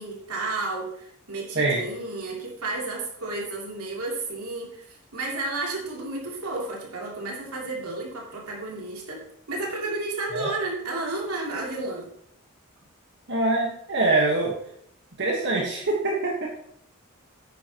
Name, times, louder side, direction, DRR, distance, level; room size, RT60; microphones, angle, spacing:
voice 1, 0.0-12.1, right 2 dB, 85° right, -3 dB, 3.0 m, -32 dB
voice 2, 13.3-14.5 15.2-16.5, right 2 dB, 55° right, -2 dB, 1.4 m, -24 dB
10.0 x 9.4 x 3.0 m, 0.71 s
head